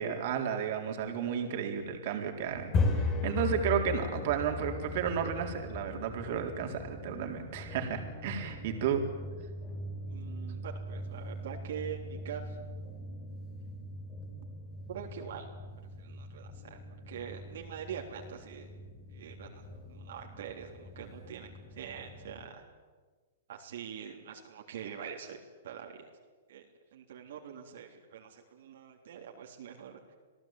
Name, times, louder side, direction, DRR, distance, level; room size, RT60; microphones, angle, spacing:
voice 1, 0.0-9.0, right 8 dB, 50° right, 3 dB, 3.9 m, -33 dB
sound 1, 2.5-22.4, left 3 dB, 25° left, 4.8 m, -39 dB
voice 2, 10.1-12.6 14.9-15.5 16.0-16.8 17.1-18.7 19.1-22.6 23.5-25.4 25.6-26.1 26.5-26.6 26.9-30.0, right 8 dB, 70° right, 0 dB, 3.5 m, -44 dB
27.5 x 17.5 x 9.0 m, 1.4 s
hypercardioid pair, 155°, 0 cm